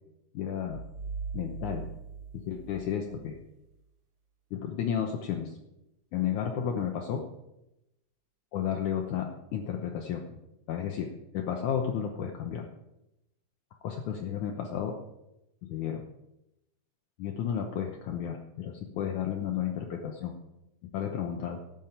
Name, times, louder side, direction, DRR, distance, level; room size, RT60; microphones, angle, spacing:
voice 1, 0.3-0.8 1.3-1.9 2.3-3.4 4.5-5.6 6.1-7.2 8.5-10.4 10.7-11.1 11.3-12.7 13.8-14.9 15.6-16.1 17.2-20.3 20.9-21.6, left 8 dB, 70° left, 2 dB, 2.3 m, -32 dB
sound 1, 0.7-3.5, right 5 dB, 60° right, 1.3 m, -40 dB
12.5 x 7.5 x 8.8 m, 0.90 s
omnidirectional pair, 3.9 m